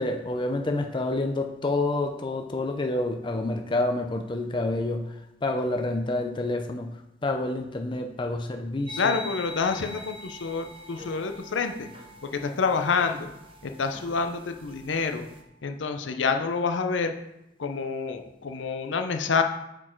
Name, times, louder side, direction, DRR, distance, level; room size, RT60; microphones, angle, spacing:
voice 1, 0.0-9.2, left 2 dB, 25° left, 4 dB, 0.5 m, -28 dB
sound 1, 8.9-15.4, left 1 dB, 30° right, 0.7 m, -43 dB
voice 2, 9.0-11.9 12.2-13.3 13.6-15.2 15.6-17.1 17.6-19.4, left 5 dB, 80° left, 6 dB, 0.6 m, -27 dB
6.1 x 4.5 x 4.4 m, 0.88 s
head